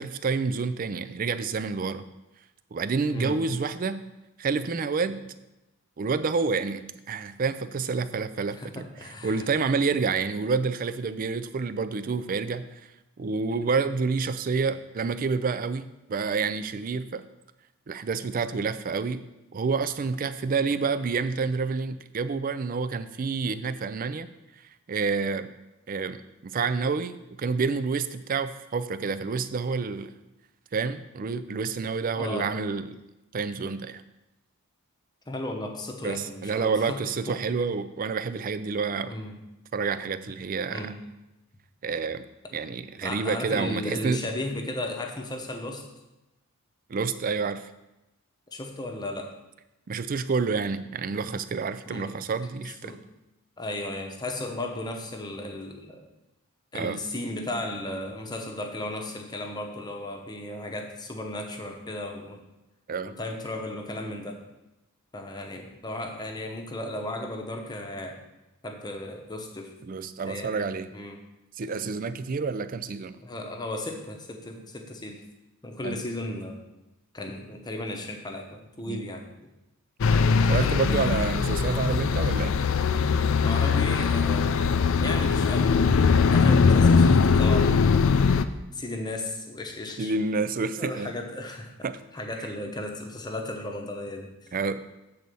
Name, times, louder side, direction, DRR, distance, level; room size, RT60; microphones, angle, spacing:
voice 1, 0.0-2.0 2.7-4.0 4.4-5.2 6.0-12.6 13.2-17.2 17.9-19.2 19.5-24.3 24.9-25.5 25.9-30.1 30.7-33.0 33.3-34.0 36.0-39.1 39.7-40.9 41.8-42.3 42.5-44.2 46.9-47.6 49.9-52.9 56.7-57.0 62.9-63.1 69.9-70.9 71.6-73.2 75.8-76.0 78.9-79.0 80.5-82.5 90.0-91.1 91.8-92.0 94.5-94.8, right 4 dB, 40° right, 12 dB, 0.4 m, -28 dB
voice 2, 3.1-3.4 8.6-9.5 32.2-32.5 35.3-37.0 37.3-37.4 39.0-39.3 40.7-41.0 43.0-45.9 48.5-49.3 51.9-52.2 52.8-53.0 53.6-56.1 56.7-62.4 63.0-64.4 65.1-68.2 68.6-69.8 70.3-71.2 73.2-75.2 75.6-76.6 77.1-79.3 80.6-80.9 83.4-84.6 84.9-85.8 86.3-88.1 88.7-90.1 90.8-91.7 92.1-94.5, left 1 dB, 20° left, 3 dB, 0.9 m, -35 dB
sound 1, 80.0-88.5, left 5 dB, 60° left, 0.4 m, -21 dB
7.8 x 4.1 x 6.8 m, 0.98 s
head